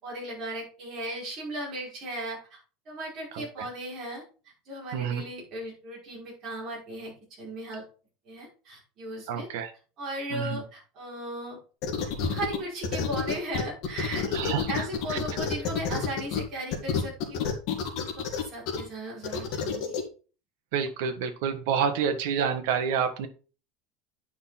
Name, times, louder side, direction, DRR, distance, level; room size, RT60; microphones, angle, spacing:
voice 1, 0.0-2.6 2.9-4.2 4.7-7.8 8.2-9.5 10.0-11.6 12.3-17.5 17.9-20.0, right 1 dB, 30° right, -4 dB, 5.5 m, -37 dB
voice 2, 3.3-3.7 4.9-5.3 9.3-9.7 10.3-10.6 14.3-15.2 20.7-23.3, right 7 dB, 65° right, 7 dB, 1.5 m, -29 dB
sound 1, 11.8-12.6 12.8-16.4 16.7-18.8 19.2-20.0, left 7 dB, 45° left, 2.2 m, -28 dB
9.6 x 5.8 x 4.3 m, 0.36 s
cardioid pair, 175°, 0 cm